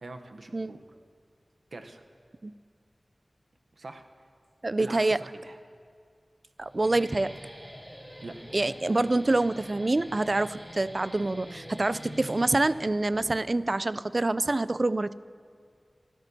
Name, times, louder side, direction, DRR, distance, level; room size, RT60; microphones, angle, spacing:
voice 1, 0.0-0.8 1.7-2.0 3.8-4.0 4.8-5.6 8.2-8.4, right 2 dB, 85° right, 5 dB, 0.8 m, -43 dB
voice 2, 4.6-5.2 6.6-7.3 8.5-15.1, right 2 dB, 50° right, 16 dB, 0.3 m, -26 dB
Guitar, 6.6-13.2, equal, 10° right, 3.5 m, -45 dB
25.0 x 12.5 x 2.8 m, 2.2 s
wide cardioid pair, 45°, 0 cm